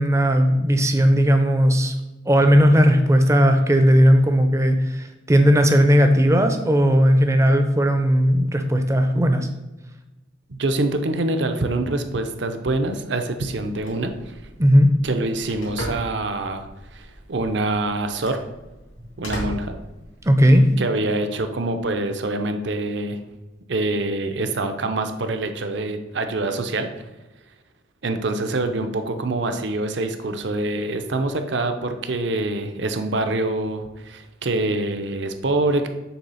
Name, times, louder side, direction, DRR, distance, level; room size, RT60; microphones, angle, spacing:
voice 1, 0.0-1.9 2.3-9.5 14.6-14.9 20.2-20.6, equal, 15° right, 7 dB, 0.5 m, -16 dB
voice 2, 10.5-14.3 15.0-16.7 16.9-18.4 19.2-19.7 20.8-23.2 23.7-26.9 28.0-35.9, right 2 dB, 60° right, 7 dB, 0.6 m, -25 dB
Telephone, 13.5-20.5, equal, 85° left, 2.5 m, -37 dB
7.0 x 3.3 x 5.6 m, 1.1 s
head